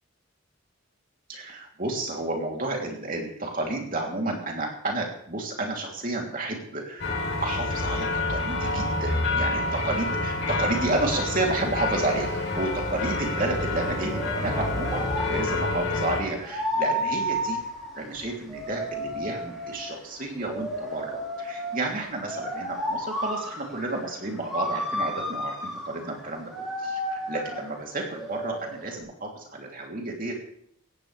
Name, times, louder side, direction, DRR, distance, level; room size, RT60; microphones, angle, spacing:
voice 1, 1.3-7.1 7.4-17.6 17.9-30.3, right 2 dB, 40° right, 0 dB, 3.3 m, -31 dB
sound 1, 7.0-16.2, left 2 dB, 55° left, 3.7 m, -28 dB
sound 2, 11.0-29.0, equal, ahead, 6.3 m, -33 dB
18.5 x 15.0 x 3.5 m, 0.68 s
head